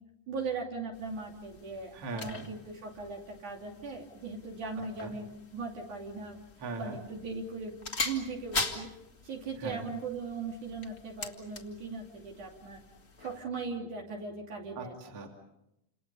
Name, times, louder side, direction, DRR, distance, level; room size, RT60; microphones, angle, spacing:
voice 1, 0.3-6.4 6.8-7.8 8.0-8.9 9.2-12.8 13.2-14.9, right 4 dB, 60° right, 0 dB, 4.2 m, -39 dB
sound 1, 0.9-13.4, left 3 dB, 25° left, 1.4 m, -42 dB
voice 2, 1.9-2.5 5.0-5.1 6.6-7.0 9.5-9.9 14.7-15.3, right 3 dB, 40° right, 2 dB, 3.4 m, -39 dB
29.0 x 27.5 x 5.6 m, 0.85 s
omnidirectional pair, 4.0 m